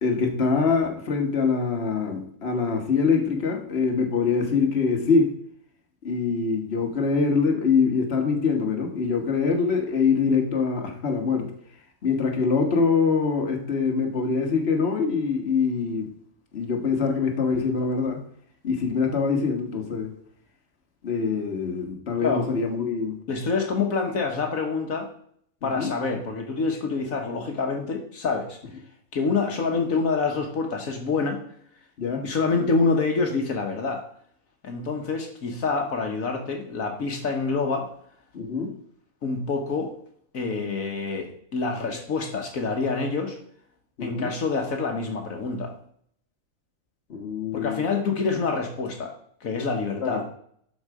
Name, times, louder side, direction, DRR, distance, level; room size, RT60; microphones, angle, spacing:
voice 1, 0.0-5.3 6.0-11.5 12.0-16.1 16.5-18.2 18.6-20.1 21.0-23.2 25.6-25.9 32.0-32.2 38.3-38.7 44.0-44.3 47.1-47.8 50.0-50.2, left 5 dB, 50° left, 2 dB, 1.6 m, -24 dB
voice 2, 23.3-25.1 25.6-28.6 29.1-31.4 32.2-34.0 34.6-37.9 39.2-39.9 40.3-43.4 44.0-45.7 47.5-49.1 49.4-50.2, left 4 dB, 70° left, 3 dB, 1.6 m, -26 dB
12.0 x 4.7 x 4.8 m, 0.65 s
omnidirectional pair, 1.5 m